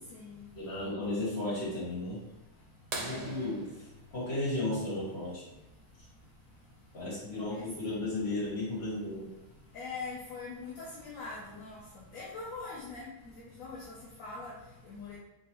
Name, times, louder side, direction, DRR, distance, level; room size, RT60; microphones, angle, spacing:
voice 1, 0.0-0.8 2.1-3.5 3.9-4.2 5.5-8.0 8.5-15.2, left 3 dB, 80° left, -5 dB, 1.1 m, -45 dB
voice 2, 0.5-2.2 2.9-3.7 4.1-5.4 6.9-9.3, left 2 dB, 50° left, -8 dB, 1.9 m, -34 dB
sound 1, 2.9-5.4 7.3-7.4 9.6-9.7 11.4-11.7 12.5-12.6, right 3 dB, 75° right, 0.3 m, -42 dB
3.5 x 3.1 x 2.9 m, 0.98 s
omnidirectional pair, 1.4 m